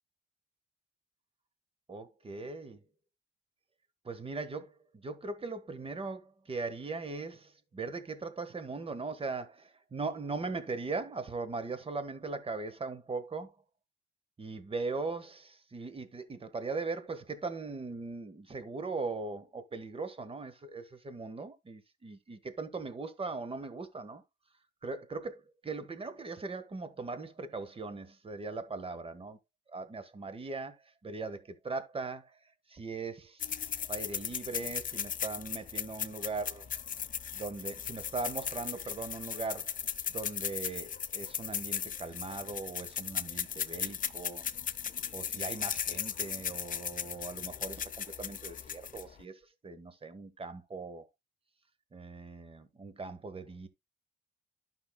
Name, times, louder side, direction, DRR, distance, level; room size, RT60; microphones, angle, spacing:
voice 1, 1.9-2.8 4.0-13.5 14.4-24.2 24.8-29.4 29.7-30.8 31.0-32.3 32.7-33.6 33.9-36.7 37.3-39.8 40.1-44.4 45.1-51.0 51.9-53.7, right 3 dB, 30° right, 1.4 m, -39 dB
sound 1, 33.4-49.2, left 8 dB, 45° left, 0.6 m, -37 dB
11.5 x 5.8 x 2.2 m
cardioid pair, 90°, 20 cm